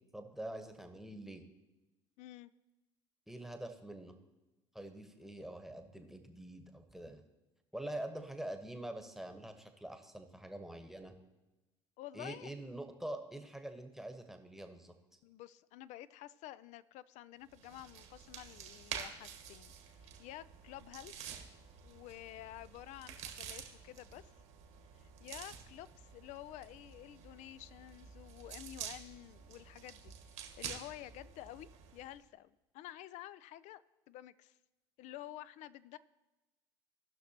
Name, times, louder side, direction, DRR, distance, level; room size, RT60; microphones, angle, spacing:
voice 1, 0.0-1.4 3.3-4.2 4.7-7.2 7.7-11.2 12.1-14.9, right 1 dB, ahead, 6 dB, 1.1 m, -45 dB
voice 2, 2.2-2.5 12.0-12.5 15.2-21.3 21.8-24.3 24.9-34.6 35.0-36.0, left 14 dB, 60° left, 17 dB, 0.4 m, -50 dB
sound 1, 17.5-32.2, right 8 dB, 65° right, 1.3 m, -49 dB
17.5 x 6.0 x 2.9 m, 1.1 s
hypercardioid pair, 65°, 14 cm